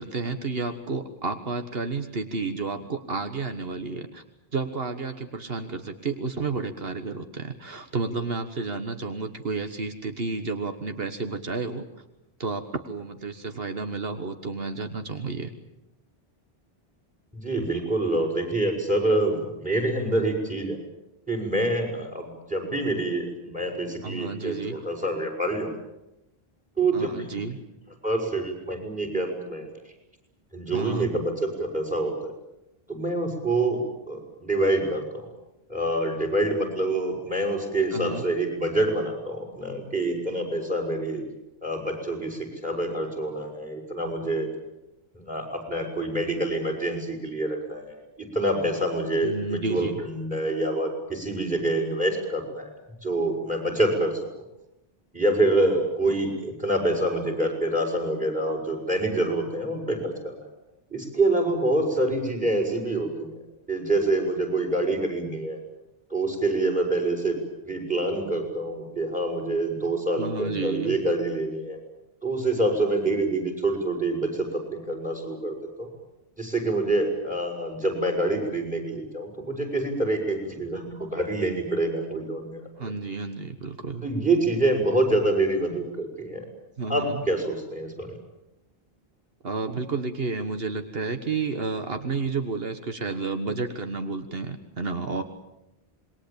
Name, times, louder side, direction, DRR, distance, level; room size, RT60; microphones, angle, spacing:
voice 1, 0.0-4.2 4.5-11.8 12.4-15.5 24.0-24.8 26.9-27.6 30.7-31.1 37.9-38.2 49.2-50.0 70.2-71.0 82.8-84.1 86.8-87.2 89.4-95.2, right 4 dB, 70° right, 7 dB, 1.7 m, -31 dB
voice 2, 17.3-20.8 21.3-25.7 26.8-27.4 28.0-29.7 30.5-32.3 32.9-35.3 35.7-41.2 41.6-44.5 45.1-52.7 53.0-54.2 55.1-60.4 60.9-63.3 63.7-65.6 66.1-67.4 67.6-71.8 72.2-75.9 76.4-82.9 84.0-86.5 86.9-88.2, right 2 dB, 5° right, 4 dB, 6.2 m, -26 dB
27.0 x 21.5 x 8.8 m, 0.91 s
omnidirectional pair, 1.0 m